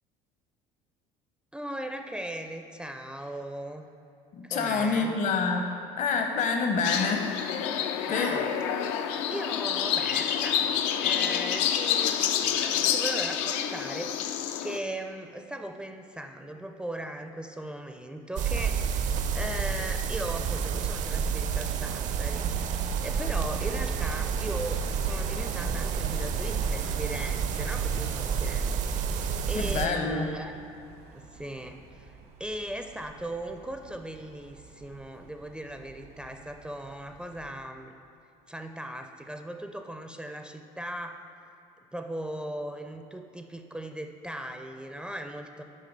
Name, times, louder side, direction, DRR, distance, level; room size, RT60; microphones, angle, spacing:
voice 1, 1.5-3.9 4.4-5.2 8.1-8.5 9.3-28.7 29.0-30.6 31.1-37.9 38.5-41.2 41.9-45.6, right 1 dB, 5° right, 5 dB, 0.4 m, -38 dB
voice 2, 4.3-5.7 6.0-7.2 8.1-8.4 29.5-30.3, left 4 dB, 55° left, 3 dB, 0.8 m, -27 dB
sound 1, 6.8-14.8, left 9 dB, 85° left, 0.4 m, -28 dB
sound 2, 18.4-29.9, right 6 dB, 55° right, 0.5 m, -29 dB
sound 3, 20.3-37.5, right 4 dB, 70° right, 1.0 m, -45 dB
7.5 x 4.8 x 5.3 m, 2.6 s
supercardioid pair, 95°, 15 cm